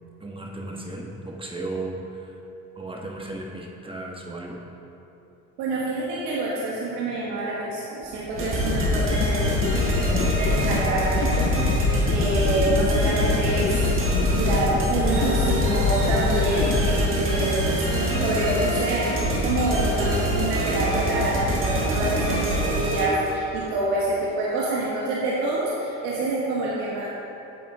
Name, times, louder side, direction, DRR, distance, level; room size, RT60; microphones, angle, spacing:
voice 1, 0.2-2.0 2.8-4.6, right 2 dB, 15° right, -1 dB, 1.2 m, -35 dB
voice 2, 5.6-13.9 14.3-17.6 18.2-27.1, right 2 dB, 90° right, -6 dB, 1.3 m, -27 dB
sound 1, 8.1-17.6, left 5 dB, 35° left, 0.5 m, -26 dB
sound 2, 8.3-23.4, right 1 dB, 40° right, 1.6 m, -25 dB
8.4 x 7.3 x 3.7 m, 3.0 s
supercardioid pair, 90°, 33 cm